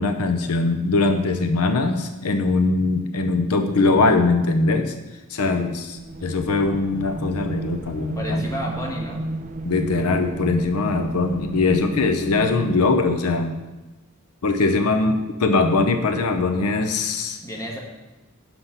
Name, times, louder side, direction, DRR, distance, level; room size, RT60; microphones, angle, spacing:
voice 1, 0.0-4.9 5.3-8.4 9.6-13.5 14.4-17.4, left 3 dB, 80° left, 6 dB, 0.7 m, -21 dB
sound 1, 5.9-13.6, right 1 dB, 35° right, 0.4 m, -32 dB
voice 2, 8.1-9.3 17.4-17.8, equal, 15° left, -1 dB, 1.3 m, -32 dB
5.9 x 5.7 x 6.7 m, 1.1 s
head